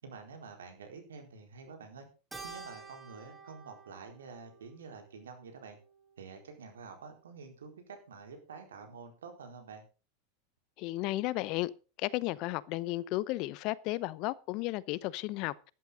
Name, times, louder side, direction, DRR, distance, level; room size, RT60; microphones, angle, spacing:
voice 1, 0.0-2.1 2.4-5.8 6.2-9.8, right 5 dB, 80° right, 4.3 m, -48 dB
Keyboard (musical), 2.3-6.9, right 4 dB, 10° right, 4.6 m, -51 dB
voice 2, 10.8-11.7 12.0-15.5, left 18 dB, 55° left, 0.8 m, -33 dB
13.5 x 11.5 x 3.9 m
hypercardioid pair, 95°, 0 cm